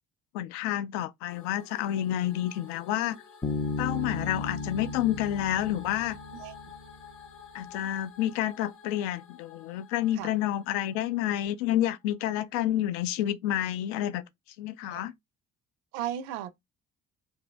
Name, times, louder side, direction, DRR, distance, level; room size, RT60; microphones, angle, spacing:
voice 1, 0.3-3.2 3.8-6.2 7.5-14.2 14.6-15.1, left 12 dB, 65° left, 0.5 m, -29 dB
sound 1, 1.3-11.5, left 5 dB, 30° left, 0.9 m, -50 dB
Bass guitar, 3.4-7.1, left 3 dB, 10° left, 0.4 m, -35 dB
voice 2, 15.9-16.5, right 11 dB, 60° right, 0.5 m, -35 dB
2.6 x 2.6 x 3.2 m
figure-of-eight pair, 45°, 40 cm